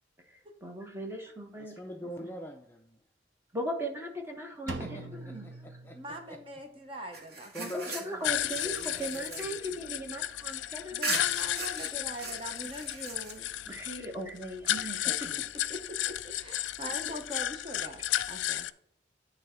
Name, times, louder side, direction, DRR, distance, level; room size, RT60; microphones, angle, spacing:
voice 1, 0.6-1.7 2.2-2.3 3.5-4.8 5.2-5.5 7.6-11.2 13.7-15.3, equal, 15° right, 1 dB, 1.2 m, -38 dB
voice 2, 1.5-3.0 4.7-6.4 7.5-10.0, equal, 10° left, 3 dB, 0.4 m, -44 dB
Drum, 4.7-6.6, right 3 dB, 85° right, 0.6 m, -42 dB
voice 3, 5.9-7.5 10.9-13.8 14.7-14.9 15.2-15.3 15.7-18.7, right 1 dB, 30° right, 4 dB, 0.8 m, -42 dB
sound 1, 7.1-10.5 11.0-13.7, right 3 dB, 60° right, 2.1 m, -40 dB
sound 2, 8.2-18.7, left 13 dB, 85° left, 0.3 m, -33 dB
10.0 x 3.4 x 4.3 m, 0.70 s
head